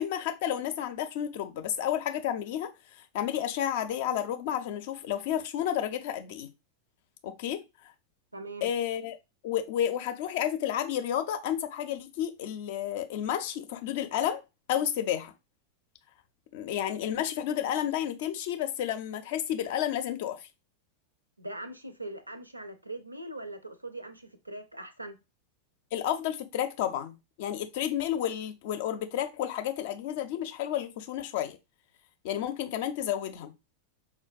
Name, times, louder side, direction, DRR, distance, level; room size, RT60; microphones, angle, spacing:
voice 1, 0.0-2.7 3.0-6.5 7.2-7.6 8.6-9.2 9.4-14.4 14.7-15.3 16.5-20.5 25.9-31.6 32.2-33.5, left 10 dB, 50° left, 0.4 m, -31 dB
voice 2, 8.3-8.7 21.4-25.2, right 1 dB, 85° right, 0.4 m, -41 dB
4.5 x 2.1 x 2.3 m
figure-of-eight pair, 90°, 0 cm